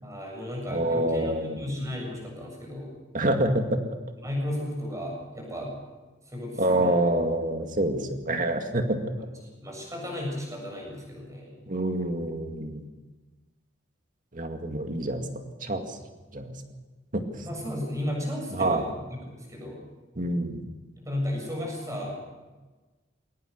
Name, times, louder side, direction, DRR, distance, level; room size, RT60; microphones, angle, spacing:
voice 1, 0.0-2.9 4.2-5.8 6.3-7.1 9.6-11.6 17.4-18.9 19.4-19.8 21.0-22.2, left 1 dB, 15° right, 0 dB, 7.5 m, -34 dB
voice 2, 0.7-1.6 3.1-3.8 6.6-9.0 11.7-12.8 14.3-15.3 15.6-16.0 16.3-16.5 17.1-17.4 18.5-18.9 20.2-20.7, right 1 dB, 45° right, 5 dB, 2.2 m, -27 dB
22.0 x 19.0 x 6.7 m, 1.2 s
head